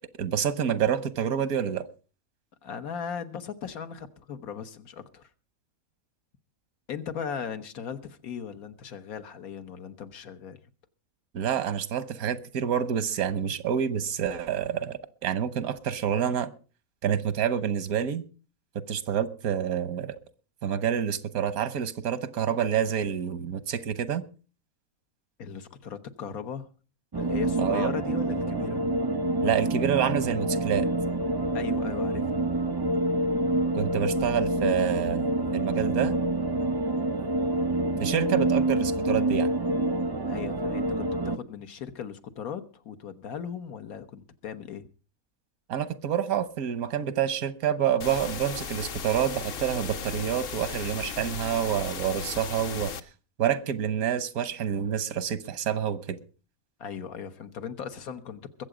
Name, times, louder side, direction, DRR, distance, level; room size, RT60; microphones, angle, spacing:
voice 1, 0.2-1.9 11.3-16.5 17.0-18.2 18.7-20.1 20.6-24.2 27.6-27.9 29.4-30.9 33.7-36.1 38.0-39.5 45.7-52.9 53.4-56.2, right 9 dB, 90° right, 1.4 m, -28 dB
voice 2, 2.6-5.3 6.9-10.6 25.4-26.7 27.1-28.9 31.5-32.4 40.3-44.9 56.8-58.6, left 7 dB, 85° left, 1.5 m, -38 dB
sound 1, 27.1-41.4, right 2 dB, 30° right, 0.4 m, -27 dB
sound 2, 48.0-53.0, left 6 dB, 50° left, 0.9 m, -36 dB
22.0 x 7.9 x 5.0 m
omnidirectional pair, 1.5 m